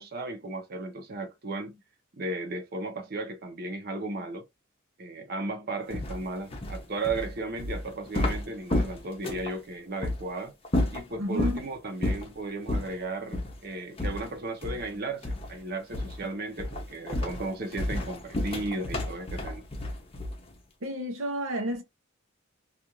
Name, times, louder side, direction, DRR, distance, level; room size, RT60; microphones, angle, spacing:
voice 1, 0.0-1.8 2.2-4.4 5.0-10.5 10.9-19.6, right 2 dB, 50° right, 0.8 m, -35 dB
sound 1, 5.9-9.5 10.0-10.2 10.6-11.6 12.0-12.3 12.7-12.9 13.3-13.5 14.0-14.9 15.2-15.6 15.9-16.2 16.6-20.5, left 1 dB, 30° left, 0.6 m, -31 dB
voice 2, 11.2-11.6 20.8-21.8, equal, 85° right, 0.7 m, -31 dB
2.5 x 2.4 x 2.9 m
head